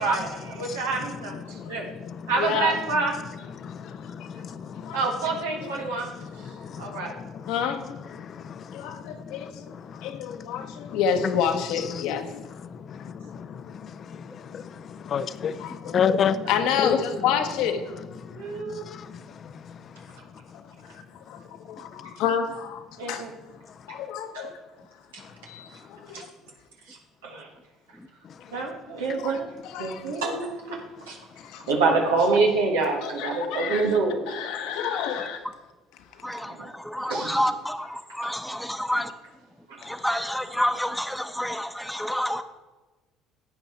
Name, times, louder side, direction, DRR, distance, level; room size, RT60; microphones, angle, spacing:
voice 1, 0.0-1.8 2.3-3.1 4.9-6.1 6.8-7.1 16.4-17.4 18.3-18.8 23.0-23.3 24.3-24.4 25.4-25.7 26.1-26.2 26.9-27.0 27.2-27.5 28.5-29.5 29.8-30.8 31.1-31.2 31.7-34.4 36.4-36.7 37.0-37.4 38.2-38.3 39.7-39.8, right 3 dB, 85° right, 1.5 m, -27 dB
voice 2, 2.4-2.8 4.8-5.0 7.5-7.8 8.7-9.5 10.0-12.2 15.6-15.9 16.5-17.8 21.3-21.4 21.7-23.3 23.9-24.5 25.9-26.2 29.2-29.4 29.7-30.0 31.4-31.6 33.0-33.9 34.3-35.4, left 7 dB, 70° left, 1.1 m, -28 dB
voice 3, 3.6-4.9 6.5-7.3 8.4-8.8 9.3-9.4 10.6-10.7 11.2-11.4 11.9-12.0 13.0-13.5 14.5-14.6 15.0-16.4 16.8-17.0 18.9-19.0, left 7 dB, 50° left, 0.6 m, -28 dB
voice 4, 36.2-39.1 39.8-42.4, equal, ahead, 1.0 m, -29 dB
11.5 x 8.0 x 4.4 m
hypercardioid pair, 60°, 0 cm